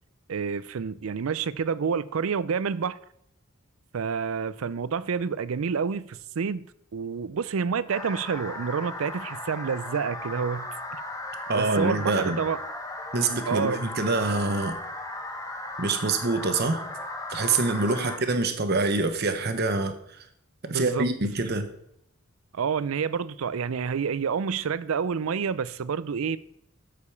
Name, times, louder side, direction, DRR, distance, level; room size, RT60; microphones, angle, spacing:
voice 1, 0.3-3.0 3.9-11.0 11.5-12.6 13.5-13.8 18.0-18.1 20.7-21.1 22.5-26.4, right 6 dB, 80° right, 0.5 m, -28 dB
sound 1, 7.9-18.2, left 1 dB, 15° left, 1.0 m, -36 dB
voice 2, 11.5-12.4 13.1-14.8 15.8-16.8 17.3-19.9 20.7-21.7, right 3 dB, 50° right, 1.0 m, -25 dB
8.3 x 5.1 x 7.0 m
head